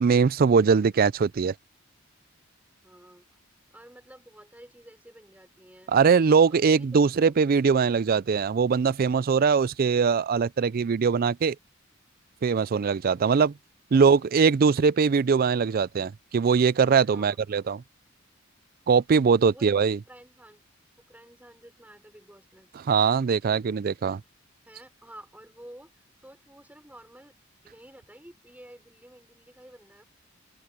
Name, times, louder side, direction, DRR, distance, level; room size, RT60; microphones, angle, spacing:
voice 1, 0.0-1.5 5.9-11.6 12.4-13.5 13.9-17.8 18.9-20.0 22.9-24.2, right 5 dB, 45° right, 0.4 m, -21 dB
voice 2, 2.8-3.4 3.7-5.9 6.5-7.0 13.9-14.1 17.0-17.7 19.4-19.8 20.1-20.6 21.0-22.7 24.7-27.3 27.6-30.0, right 1 dB, 10° right, 6.0 m, -50 dB
open air
head